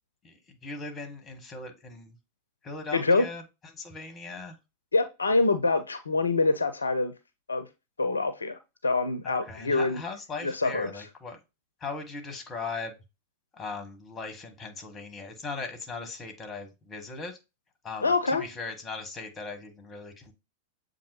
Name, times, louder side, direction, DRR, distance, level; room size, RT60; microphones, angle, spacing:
voice 1, 0.2-2.1 2.6-3.4 3.7-4.6 9.2-11.4 11.8-12.9 13.5-17.4 17.8-20.3, left 4 dB, 20° left, 1.1 m, -39 dB
voice 2, 2.9-3.3 4.9-7.1 7.5-7.7 8.0-10.0 10.4-10.9 18.0-18.4, left 3 dB, 75° left, 0.4 m, -25 dB
7.1 x 2.6 x 2.8 m
figure-of-eight pair, 90°, 0 cm